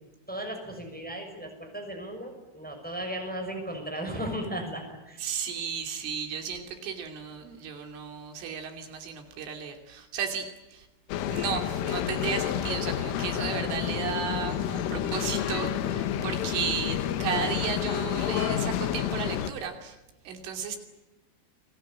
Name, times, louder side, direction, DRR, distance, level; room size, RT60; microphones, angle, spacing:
voice 1, 0.3-5.2, right 1 dB, ahead, 3 dB, 5.8 m, -36 dB
voice 2, 5.2-10.9 11.2-20.0 20.3-20.8, right 7 dB, 75° right, 4 dB, 5.3 m, -34 dB
sound 1, 11.1-19.5, left 10 dB, 80° left, 3.9 m, -29 dB
29.5 x 23.0 x 8.6 m, 1.0 s
omnidirectional pair, 5.7 m